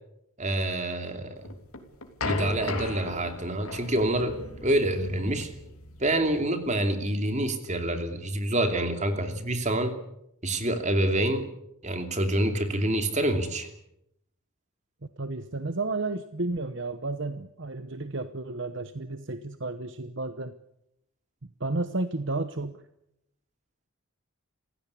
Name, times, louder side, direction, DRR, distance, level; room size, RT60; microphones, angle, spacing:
voice 1, 0.4-1.5 2.2-5.5 6.0-9.9 10.4-11.5 11.8-13.7, right 1 dB, 30° right, 7 dB, 2.8 m, -27 dB
sound 1, 1.4-6.4, left 3 dB, 75° left, 3.2 m, -37 dB
voice 2, 15.2-20.5 21.4-22.8, right 2 dB, 55° right, 11 dB, 1.0 m, -32 dB
27.0 x 16.5 x 8.3 m, 0.81 s
head